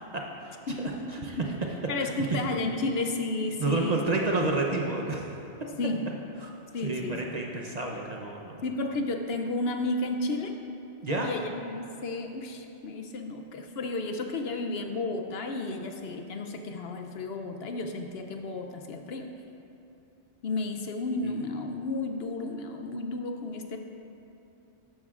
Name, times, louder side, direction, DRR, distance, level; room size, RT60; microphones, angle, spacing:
voice 1, 0.1-1.3 2.0-2.1 3.6-5.3 6.4-6.5 6.8-8.6 11.0-11.3, right 2 dB, 40° right, 0 dB, 0.7 m, -30 dB
voice 2, 0.7-1.5 1.9-4.0 5.8-6.1 6.7-7.3 8.6-10.5 11.2-19.3 20.4-23.8, left 2 dB, 65° left, 5 dB, 0.8 m, -32 dB
13.0 x 10.5 x 2.4 m, 2.8 s
omnidirectional pair, 1.2 m